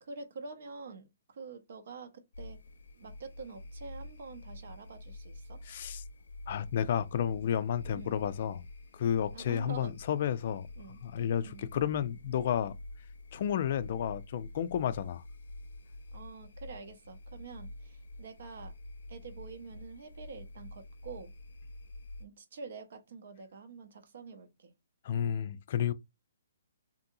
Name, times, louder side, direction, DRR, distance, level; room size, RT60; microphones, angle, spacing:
voice 1, 0.0-2.6 3.0-5.6 7.9-8.2 9.3-9.9 10.8-11.0 11.4-11.7 16.1-18.7 19.1-21.3 22.2-24.7, right 4 dB, 60° right, 0.7 m, -47 dB
sound 1, 2.3-22.3, left 2 dB, 80° left, 0.6 m, -48 dB
voice 2, 5.7-6.0 6.5-8.7 8.9-10.7 11.0-12.7 13.3-15.2 25.0-25.9, left 9 dB, 45° left, 0.3 m, -31 dB
2.7 x 2.6 x 2.6 m
hypercardioid pair, 160°, 0 cm